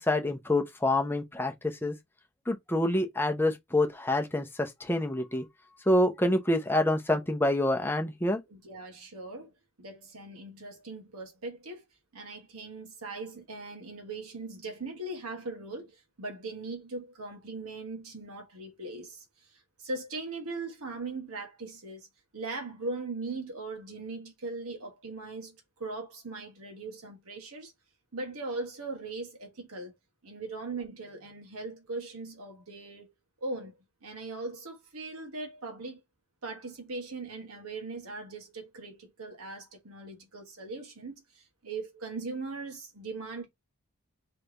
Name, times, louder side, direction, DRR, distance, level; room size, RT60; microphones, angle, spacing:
voice 1, 0.0-2.0 2.5-5.5 5.9-8.4, left 1 dB, 10° left, 0.7 m, -27 dB
voice 2, 8.5-9.5 9.8-11.8 12.1-19.2 19.8-22.1 22.3-27.7 28.1-29.9 30.2-33.1 33.4-33.7 34.0-36.0 36.4-43.5, right 3 dB, 80° right, 1.4 m, -39 dB
3.3 x 3.3 x 3.9 m
head